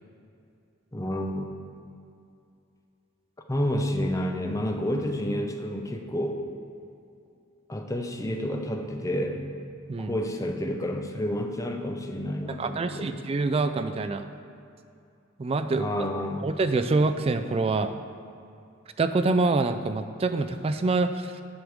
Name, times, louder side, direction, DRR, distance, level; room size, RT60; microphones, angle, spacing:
voice 1, 0.9-1.5 3.5-6.4 7.7-9.4 10.0-13.1 15.7-16.5, equal, 15° left, 4 dB, 0.6 m, -29 dB
voice 2, 12.6-14.3 15.4-16.1 16.4-17.9 19.0-21.4, right 3 dB, 30° right, 9 dB, 0.3 m, -26 dB
8.1 x 5.1 x 6.3 m, 2.5 s
head